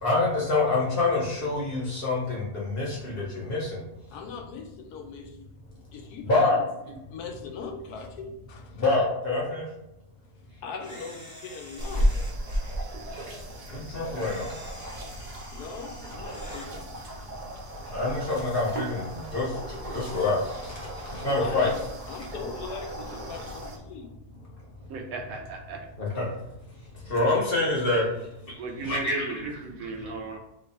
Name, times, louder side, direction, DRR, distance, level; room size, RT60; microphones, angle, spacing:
voice 1, 0.0-3.8 6.2-6.6 6.9-7.0 8.7-9.7 13.7-14.5 17.9-21.7 26.0-26.3 26.9-29.3 30.0-30.1, left 2 dB, 45° left, -5 dB, 0.8 m, -27 dB
voice 2, 4.1-5.4 5.9-6.7 7.1-8.8 10.6-12.1 15.5-16.9 21.4-24.1, left 5 dB, 80° left, 4 dB, 1.1 m, -40 dB
Camera, 10.8-12.8 14.2-16.7, equal, 10° right, 0.7 m, -47 dB
sound 1, 11.8-23.8, equal, 50° right, 0.5 m, -34 dB
voice 3, 24.9-25.9 28.6-30.4, right 4 dB, 70° right, 3 dB, 1.0 m, -35 dB
3.1 x 2.3 x 4.0 m, 0.86 s
omnidirectional pair, 1.7 m